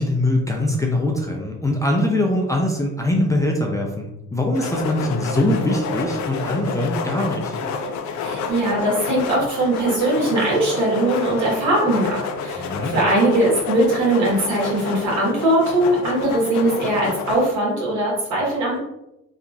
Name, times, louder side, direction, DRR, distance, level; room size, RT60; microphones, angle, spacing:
voice 1, 0.0-7.5 12.6-13.0, left 1 dB, 10° left, 0 dB, 0.4 m, -22 dB
sound 1, 4.5-17.4, left 4 dB, 70° left, 0.4 m, -29 dB
voice 2, 8.2-18.8, right 1 dB, 70° right, -4 dB, 1.4 m, -20 dB
2.8 x 2.4 x 2.6 m, 0.87 s
cardioid pair, 90°, 30 cm